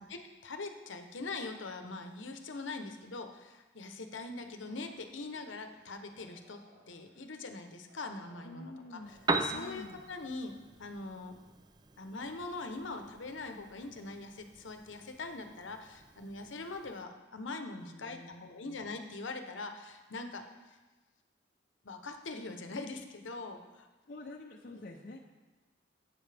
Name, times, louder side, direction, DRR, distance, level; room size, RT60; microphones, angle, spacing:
voice 1, 0.0-6.6 6.9-11.4 12.0-20.4 20.7-20.8 21.8-23.9 24.7-24.8, left 3 dB, 80° left, 6 dB, 0.9 m, -42 dB
sound 1, 4.4-9.9, right 1 dB, 60° right, 1.7 m, -64 dB
voice 2, 8.4-9.1 9.5-10.0 17.9-18.8 24.1-25.2, left 2 dB, 45° left, -1 dB, 0.7 m, -48 dB
Piano, 9.0-17.0, right 3 dB, 20° right, 0.4 m, -41 dB
11.5 x 8.3 x 3.4 m, 1.2 s
head